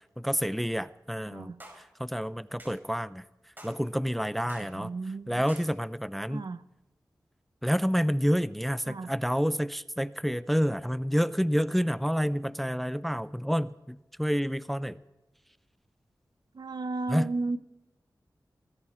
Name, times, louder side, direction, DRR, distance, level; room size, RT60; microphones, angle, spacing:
voice 1, 0.2-1.5 2.0-3.2 3.6-4.9 5.3-6.5 7.6-15.0 17.1-17.3, equal, ahead, 15 dB, 0.4 m, -28 dB
voice 2, 1.3-1.6 4.6-5.4 6.3-6.6 8.9-9.1 16.5-17.6, right 3 dB, 70° right, 13 dB, 0.7 m, -34 dB
sound 1, 1.6-1.8 2.6-2.8 3.6-3.8 4.5-4.7 5.5-5.7, right 1 dB, 25° right, 4.9 m, -48 dB
19.5 x 16.0 x 4.4 m, 0.99 s
wide cardioid pair, 65°, 7 cm